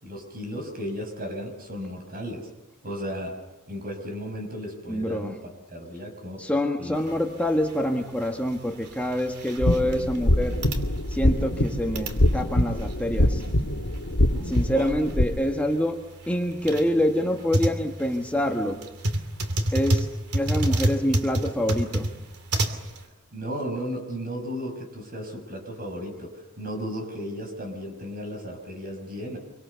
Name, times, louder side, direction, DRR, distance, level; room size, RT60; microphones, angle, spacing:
voice 1, 0.0-2.5 2.8-3.4 3.7-5.4 5.7-6.5 6.8-7.0 14.8-14.9 23.3-29.4, equal, 40° right, 4 dB, 6.0 m, -35 dB
voice 2, 4.9-5.4 6.4-10.6 11.1-13.4 14.4-18.8 19.7-20.1 20.3-22.1, equal, 5° left, 2 dB, 1.4 m, -26 dB
sound 1, 7.0-23.0, right 1 dB, 85° right, 2.8 m, -31 dB
sound 2, 9.6-15.2, left 1 dB, 70° left, 2.1 m, -24 dB
26.5 x 24.5 x 6.9 m, 1.0 s
head